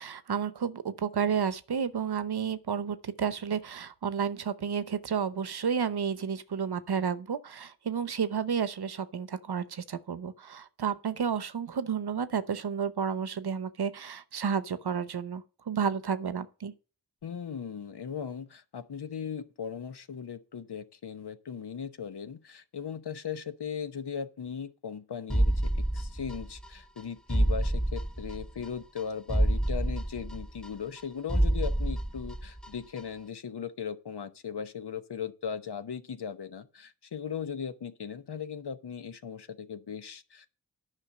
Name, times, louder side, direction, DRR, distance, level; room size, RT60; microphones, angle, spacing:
voice 1, 0.0-16.7, right 7 dB, 80° right, 0.8 m, -31 dB
voice 2, 17.2-40.5, left 7 dB, 85° left, 0.9 m, -38 dB
sound 1, 25.3-26.7 27.0-27.1 27.3-28.7 29.0-29.1 29.3-31.0 31.3-32.7 33.0-33.1, right 1 dB, ahead, 0.6 m, -28 dB
9.9 x 5.6 x 6.6 m
cardioid pair, 45°, 39 cm